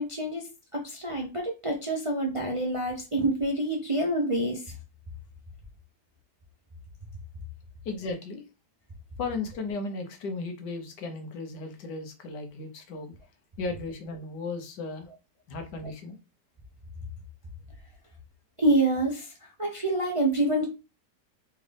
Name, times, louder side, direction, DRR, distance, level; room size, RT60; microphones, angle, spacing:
voice 1, 0.0-4.7 18.6-20.6, right 1 dB, 30° right, 0.6 m, -27 dB
voice 2, 7.8-8.4 9.2-13.1 13.6-15.1 15.5-16.2, left 3 dB, 80° left, 1.6 m, -35 dB
4.1 x 3.7 x 3.4 m
omnidirectional pair, 1.8 m